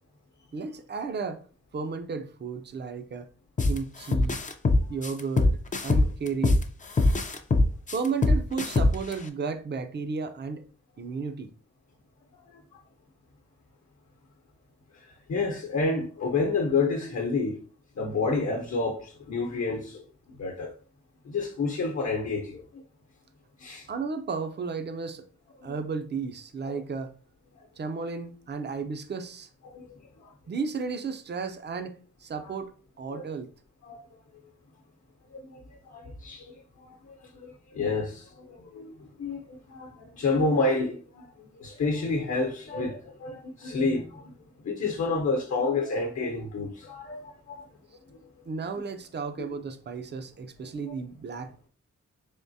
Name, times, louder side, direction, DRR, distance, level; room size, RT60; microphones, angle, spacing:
voice 1, 0.5-1.4 1.7-3.3 3.6-4.4 4.9-5.6 5.8-6.6 7.9-10.6 11.0-11.5 23.9-25.2 25.6-27.1 27.8-29.5 30.5-32.7 33.0-33.5 48.5-51.7, right 5 dB, 35° right, 0.5 m, -33 dB
sound 1, 3.6-3.8 4.1-6.6 7.0-9.1, left 2 dB, 25° left, 0.4 m, -22 dB
voice 2, 14.9-17.6 18.0-20.0 20.4-20.7 21.2-22.8 23.6-23.9 25.6-25.7 29.7-30.3 33.1-33.2 33.8-34.0 35.3-44.3 44.6-47.7 50.9-51.0, left 3 dB, 60° left, 0.8 m, -30 dB
3.8 x 3.5 x 2.7 m
wide cardioid pair, 135°, 30 cm